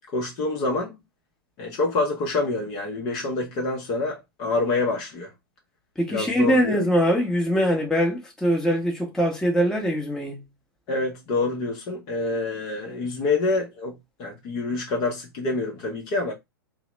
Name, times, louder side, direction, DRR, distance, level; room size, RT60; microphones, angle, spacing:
voice 1, 0.1-0.9 1.6-5.3 6.1-6.8 10.9-16.3, left 3 dB, 35° left, 0.7 m, -27 dB
voice 2, 6.0-10.4, equal, 5° left, 0.8 m, -22 dB
2.8 x 2.0 x 3.1 m
figure-of-eight pair, 105°, 12 cm